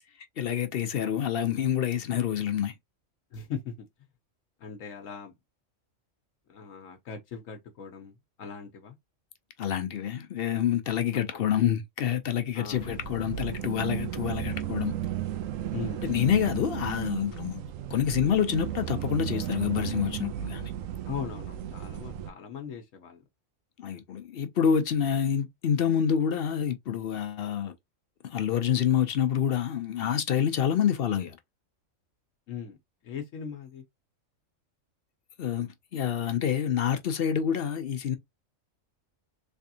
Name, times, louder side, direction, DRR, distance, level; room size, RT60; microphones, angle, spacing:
voice 1, 0.4-2.7 9.6-14.9 16.0-17.6 17.9-20.7 23.8-27.7 28.2-31.4 35.4-38.2, left 8 dB, 60° left, 0.6 m, -27 dB
voice 2, 3.3-3.8 4.6-5.3 6.5-9.0 12.5-12.9 15.7-16.0 21.1-23.2 32.5-32.8 33.0-33.8, left 7 dB, 80° left, 1.1 m, -39 dB
sound 1, 12.7-22.3, right 11 dB, 85° right, 1.0 m, -34 dB
3.4 x 3.3 x 2.7 m
omnidirectional pair, 1.4 m